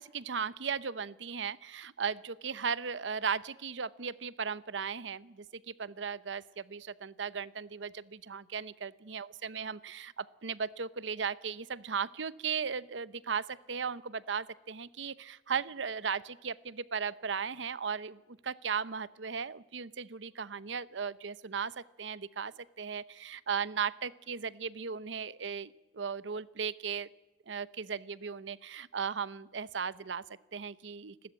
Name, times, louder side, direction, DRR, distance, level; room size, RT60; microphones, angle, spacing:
voice 1, 0.0-27.1 27.5-30.2 30.5-31.2, right 6 dB, 75° right, 17 dB, 0.8 m, -37 dB
29.0 x 13.0 x 9.0 m, 1.1 s
head